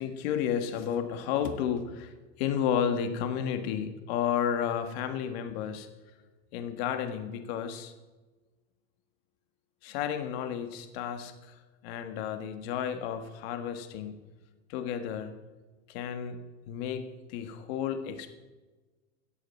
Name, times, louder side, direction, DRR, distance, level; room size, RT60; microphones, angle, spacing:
voice 1, 0.0-2.1 2.4-5.9 6.5-7.9 9.8-11.6 11.8-14.2 14.7-15.3 15.9-16.4 16.7-18.3, left 8 dB, 65° left, 7 dB, 1.7 m, -32 dB
14.5 x 8.3 x 4.5 m, 1.2 s
hypercardioid pair, 100°, 33 cm